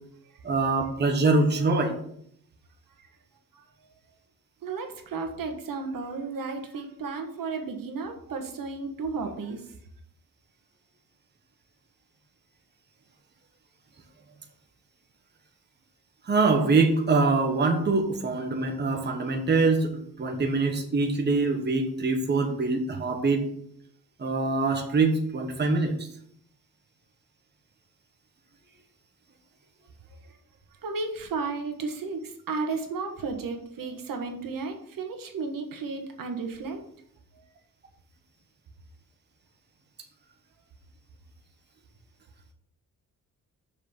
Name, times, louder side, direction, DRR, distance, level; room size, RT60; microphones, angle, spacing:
voice 1, 0.4-1.9 16.3-23.4 24.2-25.9, right 3 dB, 30° right, 3 dB, 1.3 m, -24 dB
voice 2, 4.6-9.8 30.3-30.4 30.8-36.8 37.3-37.4, right 4 dB, 75° right, 4 dB, 1.6 m, -33 dB
6.6 x 6.1 x 7.2 m, 0.69 s
wide cardioid pair, 155°, 34 cm